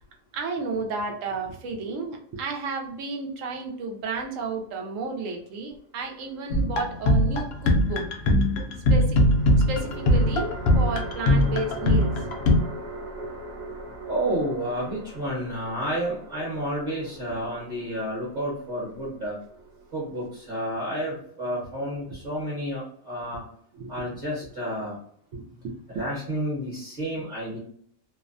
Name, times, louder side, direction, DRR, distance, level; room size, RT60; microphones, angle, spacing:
voice 1, 0.3-8.1 8.9-9.2 9.7-12.3 23.7-23.9 25.3-26.0, right 3 dB, 75° right, 2 dB, 1.0 m, -32 dB
sound 1, 6.1-6.9 9.2-20.6, right 1 dB, 55° right, 1.2 m, -40 dB
sound 2, 6.5-12.6, left 1 dB, 65° left, 0.7 m, -21 dB
voice 2, 14.1-19.4 19.9-23.4 23.9-25.0 25.9-27.6, equal, 40° right, -6 dB, 1.0 m, -30 dB
2.6 x 2.1 x 2.5 m, 0.64 s
omnidirectional pair, 1.4 m